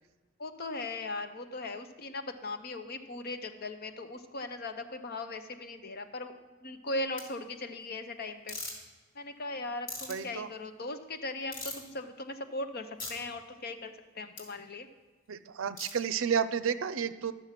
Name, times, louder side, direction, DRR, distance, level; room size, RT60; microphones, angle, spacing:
voice 1, 0.4-6.3 6.6-8.6 9.2-14.9, left 2 dB, 50° left, 8 dB, 0.8 m, -39 dB
sound 1, 7.2-7.3 8.5-8.7 9.9-10.2 11.5-11.9 13.0-13.1 14.4-14.5 15.8-15.9, left 2 dB, 80° left, 3.2 m, -39 dB
voice 2, 10.1-10.5 15.3-17.3, right 7 dB, 75° right, 13 dB, 0.5 m, -31 dB
12.0 x 7.0 x 5.8 m, 1.3 s
head